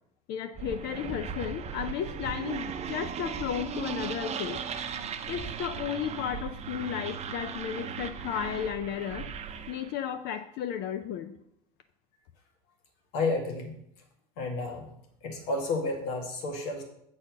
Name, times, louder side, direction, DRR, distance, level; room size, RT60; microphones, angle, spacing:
voice 1, 0.3-4.6 5.3-9.3 9.7-11.3, left 9 dB, 55° left, 8 dB, 0.6 m, -34 dB
sound 1, 0.5-9.9, right 7 dB, 35° right, 0.7 m, -37 dB
voice 2, 13.1-13.8 14.4-14.9 15.2-16.8, left 3 dB, 80° left, 2 dB, 1.9 m, -31 dB
7.6 x 4.2 x 6.2 m, 0.74 s
supercardioid pair, 115°, 20 cm